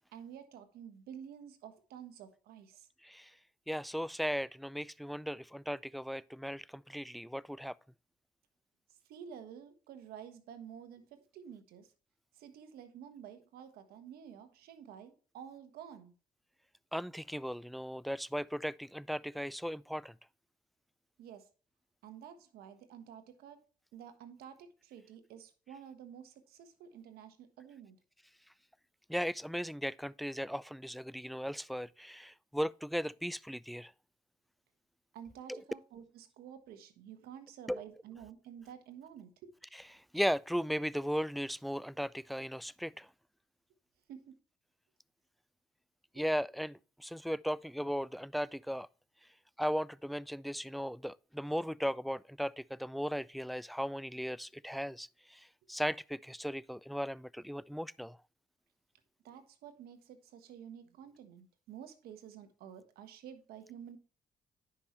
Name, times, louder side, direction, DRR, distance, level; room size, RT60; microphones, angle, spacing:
voice 1, 0.1-2.9 9.1-11.9 12.3-16.1 21.2-21.5 22.0-23.6 23.9-28.0 35.1-39.5 44.1-44.3 59.2-64.0, right 8 dB, 80° right, 1.3 m, -50 dB
voice 2, 3.0-3.3 3.7-7.8 16.9-20.1 29.1-33.9 35.5-35.6 37.7-37.8 39.7-43.1 46.1-48.9 49.6-58.2, equal, ahead, 0.3 m, -37 dB
9.9 x 5.5 x 3.1 m
supercardioid pair, 55°, 16 cm